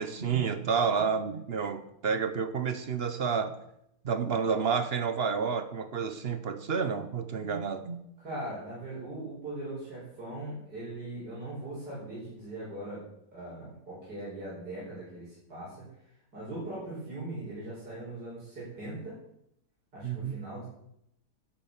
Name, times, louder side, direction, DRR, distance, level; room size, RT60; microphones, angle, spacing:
voice 1, 0.0-3.5 4.0-8.0 20.0-20.4, right 6 dB, 45° right, 0.9 m, -30 dB
voice 2, 8.2-13.0 13.3-15.8 16.3-19.1 19.9-20.7, right 1 dB, 75° right, 5.8 m, -40 dB
12.0 x 7.9 x 7.2 m
omnidirectional pair, 1.8 m